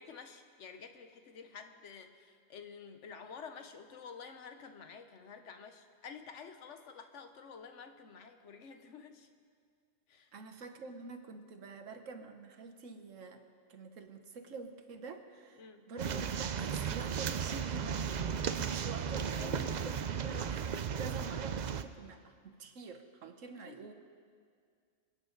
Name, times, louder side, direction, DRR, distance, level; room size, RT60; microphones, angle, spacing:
voice 1, 0.0-9.3 10.1-10.3 15.6-15.9 19.3-19.8 23.7-23.9, left 6 dB, 70° left, 7 dB, 1.2 m, -50 dB
voice 2, 10.3-13.4 13.7-18.0 18.5-23.9, right 4 dB, 90° right, 6 dB, 1.4 m, -47 dB
sound 1, 16.0-21.8, right 7 dB, 55° right, 0.5 m, -35 dB
27.0 x 9.2 x 3.9 m, 2.2 s
omnidirectional pair, 1.3 m